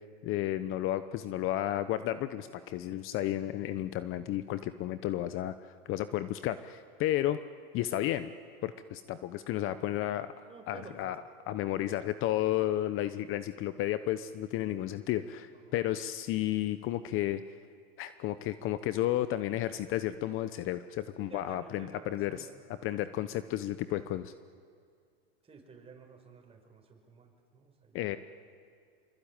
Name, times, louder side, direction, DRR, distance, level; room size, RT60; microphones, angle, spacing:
voice 1, 0.2-7.4 7.7-8.3 8.6-11.2 11.5-17.4 18.0-22.5 22.8-24.3 27.9-28.2, left 13 dB, 45° left, 12 dB, 0.9 m, -32 dB
voice 2, 10.5-11.1 15.4-15.8 21.2-23.2 25.4-28.2, right 4 dB, 20° right, 3 dB, 5.5 m, -53 dB
25.0 x 24.0 x 9.0 m, 2.2 s
hypercardioid pair, 115°, 30 cm